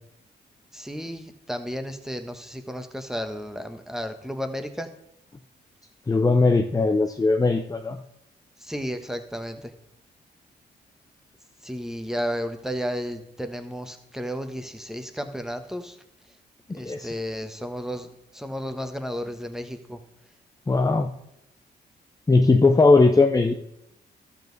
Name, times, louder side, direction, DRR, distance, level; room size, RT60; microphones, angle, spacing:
voice 1, 0.7-4.9 8.6-9.7 11.6-16.0 16.7-20.0, equal, ahead, 7 dB, 1.2 m, -33 dB
voice 2, 6.1-8.0 16.7-17.1 20.7-21.1 22.3-23.5, left 3 dB, 20° left, 5 dB, 0.7 m, -19 dB
12.0 x 7.2 x 4.0 m, 0.83 s
cardioid pair, 70°, 18 cm